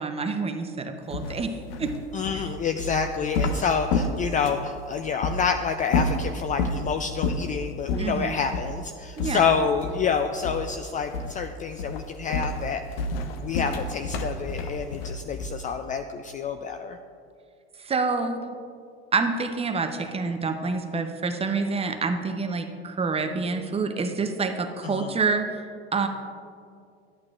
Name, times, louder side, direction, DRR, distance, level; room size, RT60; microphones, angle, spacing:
voice 1, 0.0-1.5 1.8-1.9 8.0-8.4 9.2-9.6 17.8-18.4 19.1-25.5 25.9-26.1, right 4 dB, 20° right, 6 dB, 0.7 m, -27 dB
sound 1, 1.1-4.7 5.2-5.4 5.8-6.8 7.2-7.5 7.9-8.1 8.5-8.7 9.2-10.1 10.4-10.8 11.1-11.4 11.8-15.7, left 3 dB, 65° left, 0.8 m, -29 dB
voice 2, 2.1-12.8 13.4-17.0 24.8-25.1, left 6 dB, 25° left, 7 dB, 0.3 m, -28 dB
12.5 x 8.5 x 2.4 m, 2.3 s
hypercardioid pair, 80°, 32 cm